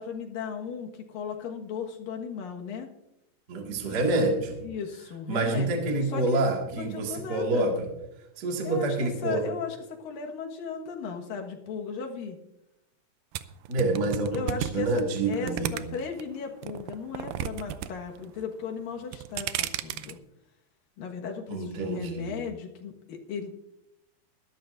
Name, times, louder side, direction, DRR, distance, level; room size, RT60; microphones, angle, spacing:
voice 1, 0.0-2.9 4.6-5.7 6.0-6.4 6.7-7.7 8.6-12.4 14.3-20.2 21.0-23.5, left 6 dB, 80° left, 2 dB, 3.2 m, -36 dB
voice 2, 3.5-4.6 5.3-7.9 8.4-9.4 13.7-14.4 14.6-15.9 21.5-22.4, right 2 dB, 35° right, 0 dB, 2.1 m, -27 dB
sound 1, 13.3-16.2 16.6-17.9 18.2-18.6 19.0-20.1, right 13 dB, 85° right, 2.3 m, -33 dB
21.0 x 12.5 x 2.6 m, 0.87 s
omnidirectional pair, 4.0 m